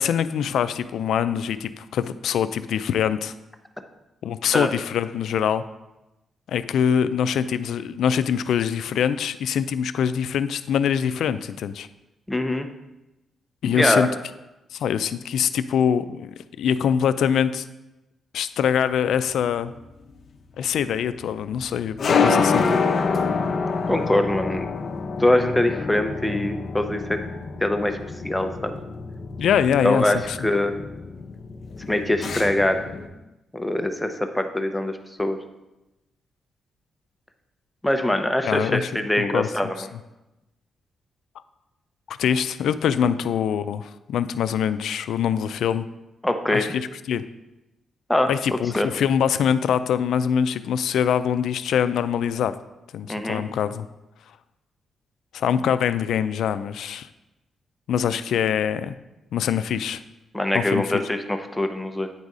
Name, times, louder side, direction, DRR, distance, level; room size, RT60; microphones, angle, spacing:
voice 1, 0.0-3.3 4.2-5.6 6.5-11.9 13.6-14.1 14.7-16.3 16.6-17.6 18.3-19.7 20.6-22.6 29.4-30.4 38.4-38.9 39.2-39.5 42.1-45.9 46.5-47.2 48.3-52.5 52.9-53.9 55.3-57.1 57.9-58.9 59.3-60.0 60.5-61.0, left 8 dB, 80° left, 12 dB, 0.3 m, -24 dB
voice 2, 12.3-12.7 13.7-14.1 23.9-24.7 25.2-27.2 27.6-28.0 28.2-28.7 29.8-30.8 31.9-32.8 33.5-35.4 37.8-39.8 46.2-46.6 48.1-48.3 48.7-48.9 53.1-53.4 60.3-62.1, left 1 dB, 5° left, 6 dB, 0.6 m, -23 dB
sound 1, 19.2-33.1, left 5 dB, 50° left, 0.7 m, -27 dB
8.9 x 4.0 x 4.8 m, 0.98 s
cardioid pair, 115°, 0 cm